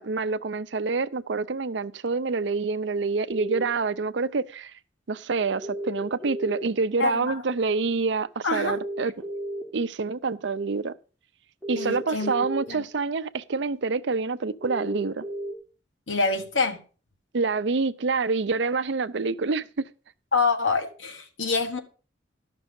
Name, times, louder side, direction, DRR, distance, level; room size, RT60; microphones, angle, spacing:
voice 1, 0.0-4.7 5.1-9.1 9.7-10.9 11.7-15.2 17.3-19.7, right 4 dB, 75° right, 0.6 m, -27 dB
sound 1, 3.3-3.6 5.6-6.6 8.6-9.6 11.6-12.6 14.6-15.5, right 1 dB, 10° left, 2.6 m, -33 dB
voice 2, 7.0-7.4 8.4-8.8 11.8-12.8 16.1-16.8 20.3-21.8, left 4 dB, 90° left, 1.6 m, -26 dB
13.5 x 6.1 x 5.4 m
head